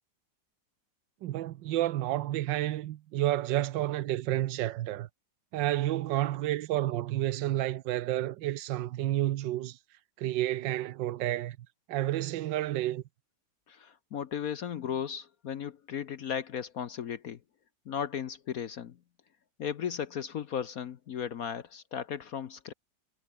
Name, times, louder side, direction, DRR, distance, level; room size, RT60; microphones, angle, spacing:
voice 1, 1.2-5.1 5.5-9.8 10.2-11.6 11.9-13.0, right 14 dB, 75° right, 1.4 m, -30 dB
voice 2, 13.7-17.4 17.9-19.0 19.6-22.7, left 8 dB, 55° left, 1.2 m, -36 dB
omnidirectional pair, 2.0 m